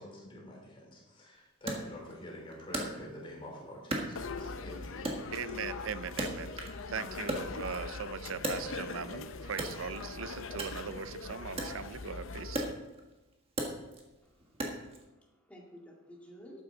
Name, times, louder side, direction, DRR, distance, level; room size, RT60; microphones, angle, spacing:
voice 1, 0.0-5.3, equal, 25° left, 3.5 m, -47 dB
Wood, 1.7-3.4 3.9-4.7 5.0-6.9 7.1-9.1 9.5-15.0, right 1 dB, 25° right, 1.6 m, -38 dB
sound 1, 4.2-12.7, left 4 dB, 65° left, 0.7 m, -41 dB
voice 2, 5.3-6.6 6.9-12.6, right 6 dB, 70° right, 0.5 m, -40 dB
voice 3, 14.2-16.6, equal, 5° left, 2.1 m, -54 dB
12.5 x 9.3 x 3.9 m
head